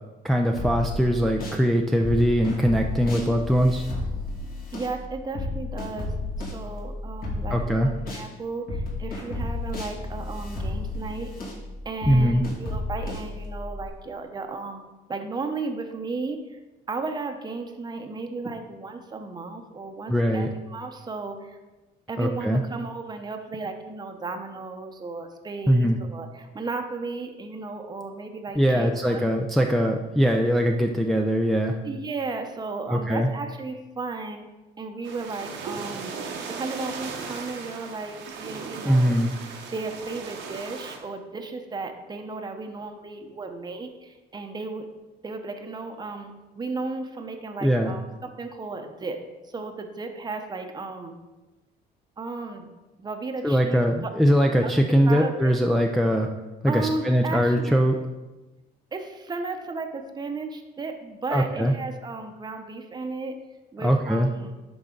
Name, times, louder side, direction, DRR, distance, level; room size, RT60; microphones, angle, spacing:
voice 1, 0.2-3.8 7.5-7.9 12.0-12.4 20.1-20.5 22.2-22.6 25.7-26.0 28.6-31.8 32.9-33.3 38.8-39.3 47.6-47.9 53.4-56.3 56.6-58.0 61.3-61.7 63.8-64.3, equal, ahead, 2 dB, 0.5 m, -21 dB
sound 1, 0.6-1.6 2.0-8.3 8.7-13.9, left 2 dB, 50° left, 2.5 m, -32 dB
voice 2, 4.7-11.3 11.8-16.6 16.9-21.6 22.1-29.2 31.8-34.4 34.8-36.2 36.5-39.1 39.7-44.9 45.2-49.2 49.4-51.1 52.2-52.7 53.0-54.1 54.6-54.7 55.1-55.5 56.7-57.8 58.9-63.4 63.7-64.5, right 3 dB, 20° right, 5 dB, 0.8 m, -34 dB
sound 2, 35.0-41.0, right 5 dB, 90° right, 1.2 m, -37 dB
11.0 x 4.0 x 3.8 m, 1.1 s
cardioid pair, 115°, 19 cm